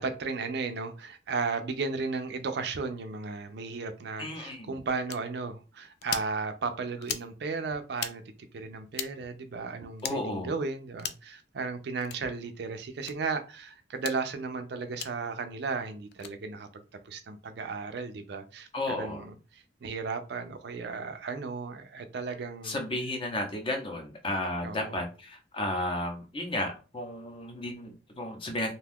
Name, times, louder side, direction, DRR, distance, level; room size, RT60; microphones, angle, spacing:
voice 1, 0.0-8.2 8.5-22.8 24.6-25.0, right 4 dB, 60° right, 0.4 m, -35 dB
voice 2, 4.2-4.8 10.0-10.5 18.7-19.2 22.6-28.7, left 1 dB, 30° left, 0.7 m, -33 dB
sound 1, 5.1-5.2 6.0-6.3 7.0-7.3 7.9-8.1 8.9-9.1 10.0-10.2 11.0-11.3 12.0-12.2 13.0-13.1 14.0-14.2 15.0-15.1 16.1-16.3, left 9 dB, 55° left, 0.3 m, -36 dB
2.6 x 2.3 x 3.4 m
head